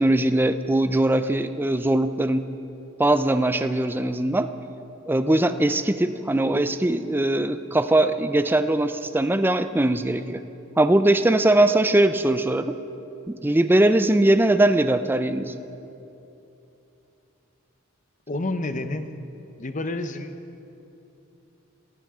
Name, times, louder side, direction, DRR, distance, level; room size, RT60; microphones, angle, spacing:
voice 1, 0.0-2.4 3.0-4.5 5.1-10.4 10.8-12.7 13.3-15.6, right 1 dB, 10° right, 10 dB, 0.4 m, -21 dB
voice 2, 18.3-19.1 19.6-20.4, left 2 dB, 35° left, 9 dB, 0.7 m, -29 dB
19.0 x 17.0 x 3.7 m, 2.9 s
head